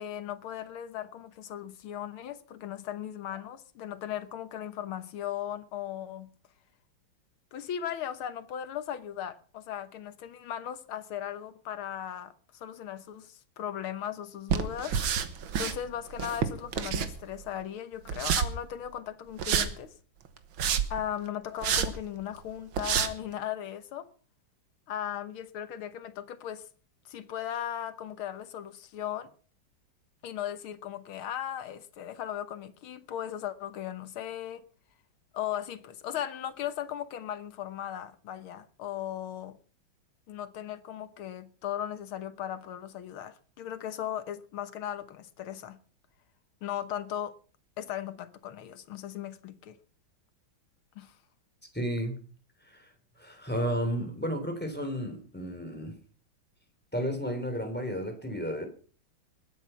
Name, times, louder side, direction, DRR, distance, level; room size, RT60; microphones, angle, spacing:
voice 1, 0.0-6.3 7.5-15.0 15.6-19.9 20.9-24.1 24.9-26.7 27.1-29.3 30.2-34.6 35.3-39.6 40.3-45.8 46.6-47.3 47.8-49.8 51.0-51.2, left 10 dB, 90° left, 2.0 m, -37 dB
sound 1, 14.5-15.8 16.1-17.4 18.1-18.5 19.4-19.7 20.4-21.0 21.6-21.9 22.4-22.5 22.7-23.1, right 7 dB, 75° right, 2.0 m, -28 dB
voice 2, 51.7-52.2 52.7-52.9 53.2-56.0 56.9-58.7, equal, 5° left, 3.3 m, -32 dB
20.5 x 9.1 x 5.8 m
omnidirectional pair, 2.2 m